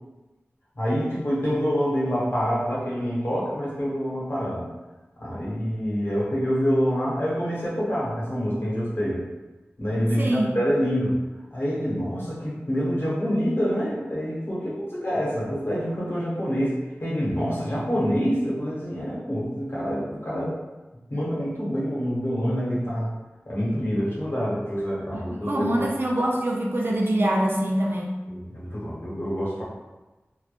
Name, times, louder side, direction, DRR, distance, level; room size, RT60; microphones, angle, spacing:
voice 1, 0.8-4.6 5.2-9.2 9.8-11.2 11.5-20.5 21.1-23.1 23.5-25.9 28.3-29.6, equal, 55° left, -7 dB, 1.0 m, -26 dB
voice 2, 10.2-10.6 25.1-28.2, right 1 dB, 55° right, -2 dB, 0.4 m, -24 dB
3.1 x 2.1 x 2.4 m, 1.1 s
wide cardioid pair, 55°, 5 cm